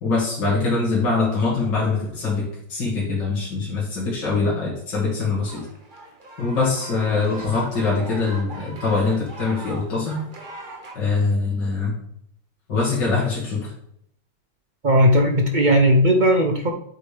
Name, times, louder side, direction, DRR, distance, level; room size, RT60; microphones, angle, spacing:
voice 1, 0.0-5.7 6.4-10.2 10.9-12.0 12.7-13.7, left 3 dB, 70° left, -7 dB, 2.8 m, -23 dB
sound 1, 5.5-11.0, right 2 dB, 30° right, 1.1 m, -40 dB
voice 2, 14.8-16.7, equal, 60° right, 3 dB, 0.4 m, -17 dB
8.3 x 7.7 x 3.4 m, 0.71 s
omnidirectional pair, 2.0 m